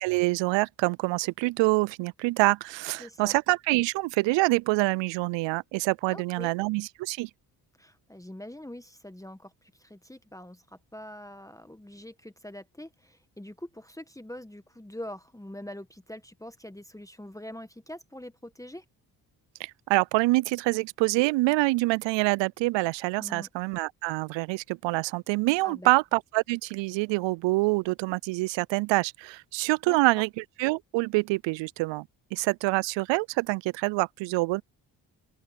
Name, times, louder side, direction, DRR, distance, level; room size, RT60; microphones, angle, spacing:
voice 1, 0.0-7.3 19.6-30.3 30.6-32.0 32.3-34.6, right 22 dB, 70° right, 0.6 m, -26 dB
voice 2, 3.0-3.3 6.1-6.5 7.8-18.9 23.2-23.5 25.6-25.9 29.9-30.0, left 1 dB, 5° left, 1.8 m, -44 dB
open air
hypercardioid pair, 45°, 45 cm